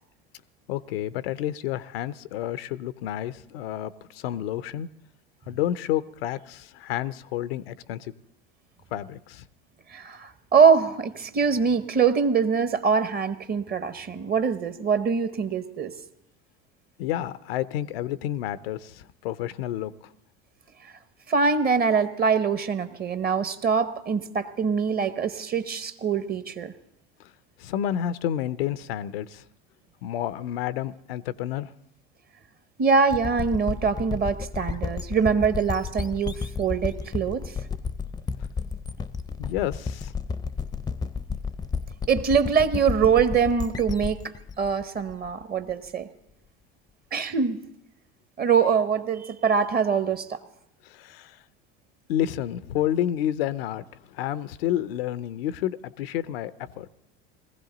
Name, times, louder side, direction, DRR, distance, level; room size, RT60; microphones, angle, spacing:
voice 1, 0.7-4.9 5.5-8.1 8.9-9.4 17.0-19.9 27.2-27.3 27.6-29.4 30.0-31.7 39.4-40.1 50.8-51.4 52.1-56.9, left 11 dB, 90° left, 16 dB, 0.5 m, -30 dB
voice 2, 9.9-15.9 21.3-26.7 32.8-37.5 42.1-44.2 44.6-46.1 47.1-47.6 48.4-50.4, right 6 dB, 35° right, 11 dB, 0.9 m, -23 dB
sound 1, 33.1-45.7, left 5 dB, 15° left, 0.5 m, -32 dB
19.5 x 15.0 x 3.9 m, 0.82 s
supercardioid pair, 95°, 29 cm